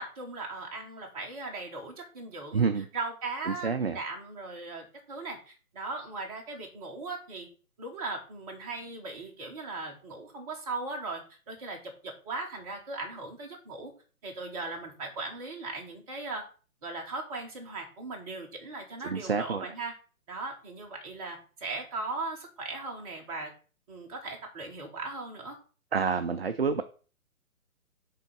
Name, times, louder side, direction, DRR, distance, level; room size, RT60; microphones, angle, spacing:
voice 1, 0.0-7.5 7.8-13.9 14.2-16.4 16.8-19.9 20.3-23.5 23.9-25.6, right 3 dB, 25° right, 1 dB, 1.5 m, -38 dB
voice 2, 2.5-2.8 3.5-4.0 19.0-19.7 25.9-26.8, right 5 dB, 45° right, 10 dB, 0.4 m, -28 dB
5.6 x 3.8 x 5.3 m, 0.39 s
figure-of-eight pair, 135°, 44 cm